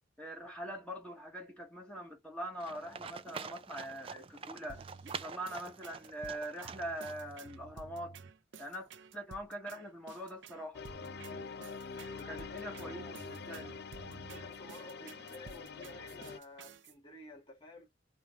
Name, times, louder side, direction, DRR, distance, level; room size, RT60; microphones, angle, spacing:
voice 1, 0.2-4.8 5.1-8.2 8.6-10.8 12.2-13.8, right 1 dB, 5° left, 1.3 m, -43 dB
Livestock farm animals working animals, 2.6-7.5, right 5 dB, 30° right, 0.4 m, -46 dB
sound 1, 4.7-16.9, right 4 dB, 70° right, 0.7 m, -52 dB
sound 2, 10.7-16.4, left 5 dB, 55° left, 0.5 m, -45 dB
voice 2, 12.2-13.1 14.3-17.9, left 1 dB, 25° left, 3.4 m, -52 dB
5.0 x 3.1 x 3.0 m
head